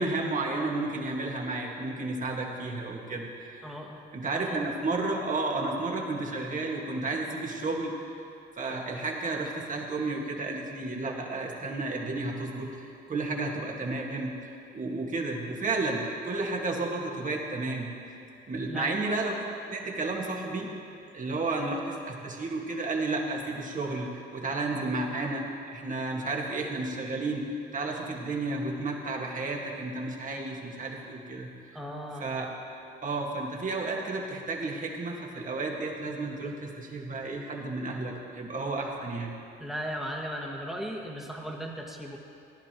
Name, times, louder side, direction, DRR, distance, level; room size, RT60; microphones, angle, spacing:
voice 1, 0.0-3.8 4.1-7.9 8.6-14.3 14.7-17.9 18.5-20.7 21.1-25.5 25.7-27.5 27.7-31.8 32.2-32.5 33.0-39.3, right 2 dB, 40° right, 0 dB, 1.8 m, -32 dB
voice 2, 3.6-4.0 4.3-4.7 18.7-19.0 31.7-32.3 39.6-42.2, equal, ahead, -1 dB, 1.7 m, -37 dB
17.5 x 11.0 x 3.0 m, 2.7 s
cardioid pair, 90°, 20 cm